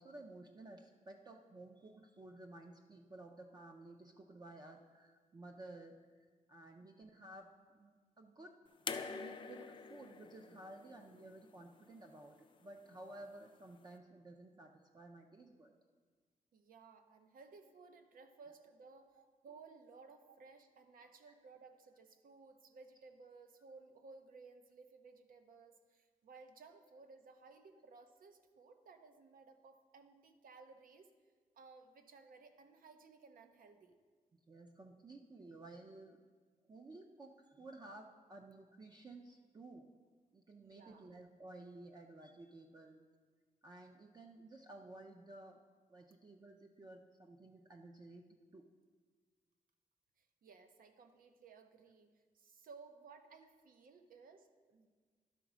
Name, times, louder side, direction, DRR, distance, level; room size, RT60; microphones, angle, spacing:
voice 1, 0.0-8.6 8.9-15.7 19.2-19.3 21.3-21.4 34.5-36.2 36.7-39.9 40.3-43.0 43.6-45.6 45.9-48.2 48.5-48.7, right 2 dB, 30° right, 3 dB, 0.4 m, -54 dB
sound 1, 8.9-12.0 13.2-13.3, left 5 dB, 35° left, 0.4 m, -46 dB
voice 2, 16.5-31.1 31.5-34.0 40.6-41.1 50.2-54.9, right 4 dB, 85° right, 7 dB, 0.7 m, -59 dB
11.5 x 4.0 x 6.0 m, 1.5 s
wide cardioid pair, 180°, 14 cm